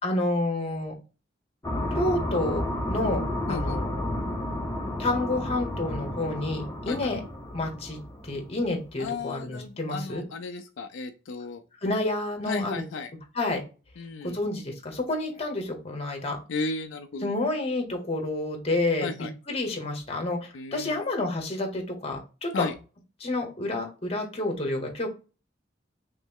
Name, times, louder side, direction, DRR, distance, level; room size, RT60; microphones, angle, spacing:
voice 1, 0.0-0.9 1.9-2.6 2.9-3.2 3.5-4.1 5.0-7.2 7.5-10.2 11.8-12.8 13.3-13.6 14.2-16.4 17.2-22.7 23.2-25.1, left 2 dB, 35° left, 3 dB, 1.0 m, -29 dB
sound 1, 1.6-8.8, left 1 dB, 15° left, 0.7 m, -31 dB
voice 2, 3.5-3.8 6.9-7.1 9.0-11.6 12.5-13.1 14.0-14.4 16.5-17.3 19.0-19.3 20.5-21.0 22.5-22.7, left 4 dB, 85° left, 7 dB, 0.4 m, -34 dB
3.2 x 3.0 x 3.6 m, 0.33 s
head